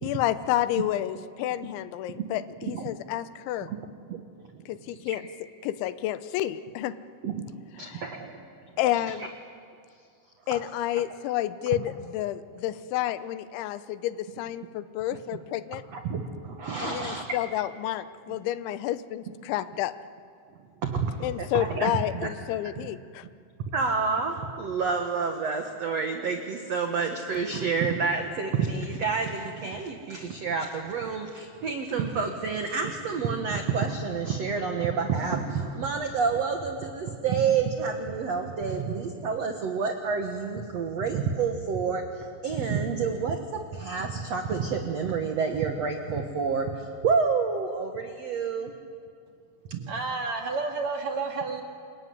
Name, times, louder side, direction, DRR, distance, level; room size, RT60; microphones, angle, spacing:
voice 1, 0.0-3.7 4.7-5.2 5.6-7.0 7.9-8.0 8.8-9.3 10.5-15.8 16.8-19.9 21.2-23.3, left 13 dB, 90° left, 13 dB, 3.2 m, -30 dB
voice 2, 7.8-8.4 10.5-10.6 15.9-17.4 18.3-18.4 20.8-22.3 22.8-22.9 23.7-48.7 49.7-49.9, right 5 dB, 75° right, 4 dB, 1.5 m, -29 dB
voice 3, 49.9-51.6, right 4 dB, 50° right, 2 dB, 2.6 m, -30 dB
27.5 x 22.5 x 9.6 m, 2.3 s
omnidirectional pair, 5.2 m